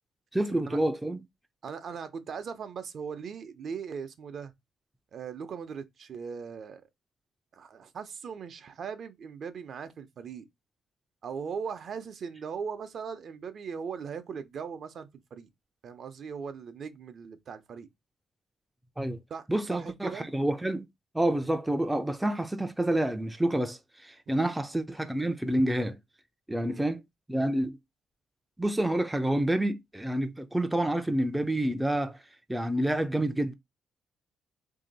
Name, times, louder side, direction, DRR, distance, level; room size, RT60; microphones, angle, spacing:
voice 1, 0.3-1.2 19.0-19.2 19.5-20.8 21.1-25.9 26.5-27.0 27.3-27.8 28.6-32.2 32.5-33.5, right 1 dB, 10° right, 0.4 m, -28 dB
voice 2, 1.6-4.5 5.1-6.8 7.5-10.5 11.2-15.5 15.8-17.9 19.3-20.3 24.3-24.5 26.6-26.9, right 6 dB, 55° right, 0.7 m, -39 dB
2.9 x 2.7 x 4.0 m
cardioid pair, 90°, 0 cm